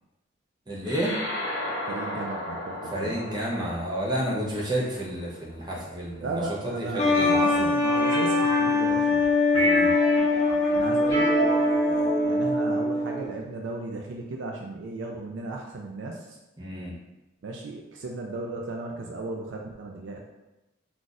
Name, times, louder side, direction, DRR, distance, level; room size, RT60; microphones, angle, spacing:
voice 1, 0.7-1.2 2.9-7.4 9.5-9.9 16.6-16.9, right 1 dB, 20° right, -4 dB, 0.6 m, -30 dB
sound 1, 0.8-5.6, left 1 dB, 85° left, 0.8 m, -35 dB
voice 2, 1.9-3.2 6.2-9.2 10.7-16.4 17.4-20.2, right 2 dB, 60° right, 0 dB, 0.3 m, -35 dB
sound 2, 7.0-13.3, left 2 dB, 35° left, 0.4 m, -23 dB
sound 3, 7.8-9.2 9.5-13.3, right 1 dB, 10° left, 1.2 m, -30 dB
2.4 x 2.4 x 3.9 m, 0.98 s
head